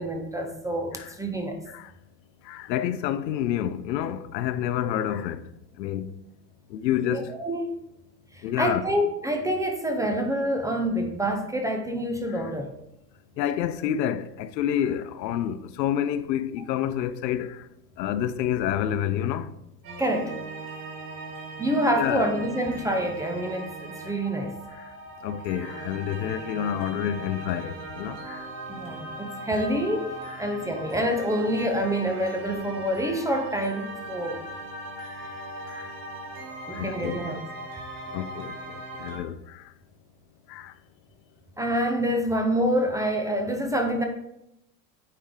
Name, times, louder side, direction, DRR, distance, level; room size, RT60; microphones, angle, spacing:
voice 1, 0.0-1.6 7.0-7.8 8.3-12.7 20.0-20.3 21.6-24.5 28.7-30.1 30.4-34.4 36.7-37.4 41.6-44.0, equal, 5° right, 0.4 m, -27 dB
voice 2, 2.5-5.4 5.8-6.1 6.7-7.3 8.4-8.8 12.3-12.4 13.4-17.6 18.0-19.5 22.0-22.3 25.2-28.5 35.7-35.8 36.7-37.2 38.1-38.5 39.0-39.6 40.5-40.7, left 10 dB, 90° left, 0.6 m, -28 dB
sound 1, 19.8-39.2, right 2 dB, 65° right, 2.4 m, -39 dB
8.7 x 3.2 x 3.6 m
hypercardioid pair, 105°, 50 cm